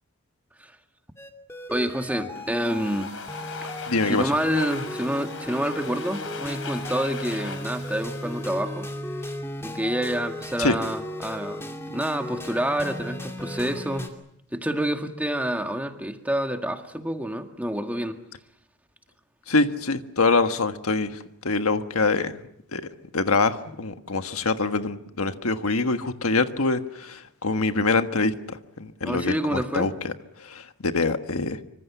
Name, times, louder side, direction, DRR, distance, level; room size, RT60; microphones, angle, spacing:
sound 1, 1.2-14.1, left 1 dB, 10° left, 2.6 m, -36 dB
voice 1, 1.7-3.2 3.7-8.9 9.6-14.1 14.5-18.2 29.0-29.9, equal, 5° right, 5 dB, 1.8 m, -28 dB
Domestic sounds home sounds, 2.4-9.2, left 4 dB, 65° left, 4.0 m, -39 dB
voice 2, 3.9-4.3 10.6-10.7 19.5-22.3 22.7-22.8 23.1-30.1 30.4-31.6, left 3 dB, 80° left, 8 dB, 1.5 m, -25 dB
26.0 x 25.0 x 7.0 m, 0.74 s
head